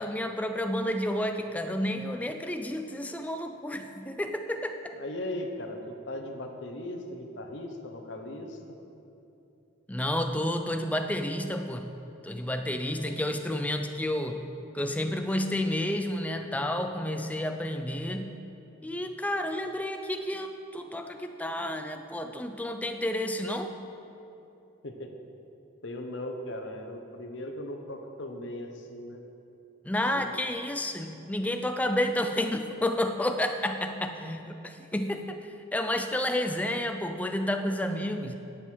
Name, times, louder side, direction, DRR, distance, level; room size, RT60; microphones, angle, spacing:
voice 1, 0.0-4.9 9.9-11.9 12.2-18.4 18.8-23.7 29.8-35.4 35.7-38.4, left 1 dB, 10° left, 6 dB, 0.4 m, -30 dB
voice 2, 4.9-8.6 24.8-25.1 25.8-29.2 30.2-30.3, left 1 dB, 70° left, 4 dB, 1.0 m, -38 dB
10.5 x 8.0 x 4.6 m, 2.9 s
head